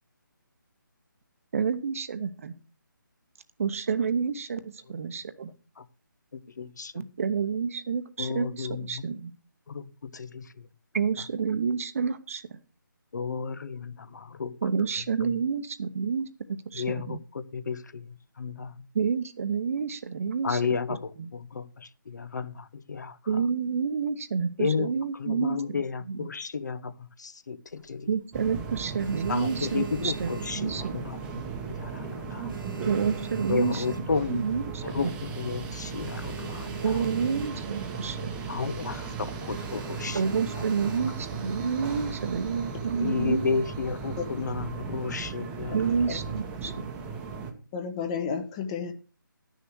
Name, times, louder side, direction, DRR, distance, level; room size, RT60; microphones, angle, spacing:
voice 1, 1.5-2.6 3.6-5.5 6.9-9.3 10.9-12.6 14.6-17.2 18.9-20.6 20.9-21.3 23.3-26.3 28.1-31.0 32.8-35.2 36.8-38.3 40.1-43.5 45.7-46.9, right 6 dB, 40° right, 0.9 m, -29 dB
voice 2, 6.6-6.9 8.2-8.8 9.7-9.8 10.1-10.5 13.1-14.6 16.8-17.2 17.5-18.0 18.4-18.7 20.4-21.7 22.1-22.5 22.9-23.1 24.6-24.9 25.2-26.9 27.2-28.1 29.3-31.0 31.7-32.5 33.5-34.4 34.9-35.1 35.4-36.7 38.5-40.2 43.0-45.7, left 5 dB, 55° left, 0.8 m, -32 dB
sound 1, 27.7-28.4 28.8-31.3 31.6-31.9 32.2-34.5 34.9-35.0 35.2-35.3 35.7-37.9 38.2-38.4 38.8-39.0 39.5-41.3 42.0-42.6, right 3 dB, 80° right, 1.5 m, -44 dB
sound 2, 28.3-47.5, right 5 dB, 10° right, 0.9 m, -36 dB
voice 3, 47.7-48.9, left 6 dB, 20° left, 0.9 m, -32 dB
11.0 x 6.5 x 6.2 m
figure-of-eight pair, 160°, 11 cm